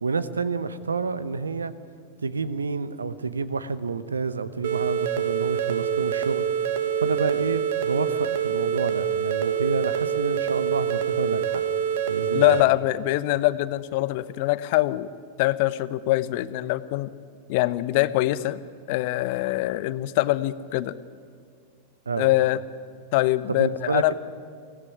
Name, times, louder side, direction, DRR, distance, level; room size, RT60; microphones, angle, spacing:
voice 1, 0.0-1.7 2.2-6.5 7.0-11.6 12.1-12.6 22.1-22.3 23.5-24.1, right 4 dB, 75° right, 15 dB, 1.0 m, -29 dB
sound 1, 4.6-12.6, right 8 dB, 55° right, 1.3 m, -26 dB
voice 2, 12.3-15.1 15.4-17.1 17.5-18.6 18.9-20.9 22.2-22.6 23.1-24.1, left 17 dB, 50° left, 16 dB, 0.8 m, -23 dB
23.5 x 16.5 x 9.6 m, 2.1 s
figure-of-eight pair, 90°, 0 cm